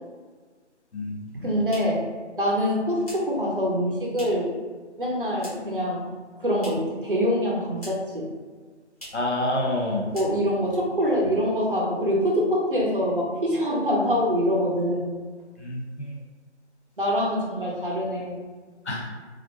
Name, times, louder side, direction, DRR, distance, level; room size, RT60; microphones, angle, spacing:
sound 1, 1.3-4.6 4.9-5.8 6.1-7.0 7.3-8.2 8.5-8.6 8.9-9.3 9.7-9.8 10.1-10.7, equal, 30° left, 0.8 m, -45 dB
voice 1, 1.3-2.0 2.4-4.5 5.0-6.0 6.4-8.3 10.1-15.1 17.0-18.4, equal, 45° right, -3 dB, 0.6 m, -24 dB
voice 2, 9.1-10.1 15.6-16.1 18.9-19.1, left 1 dB, 70° left, -1 dB, 0.6 m, -27 dB
2.4 x 2.1 x 2.8 m, 1.4 s
figure-of-eight pair, 160°, 36 cm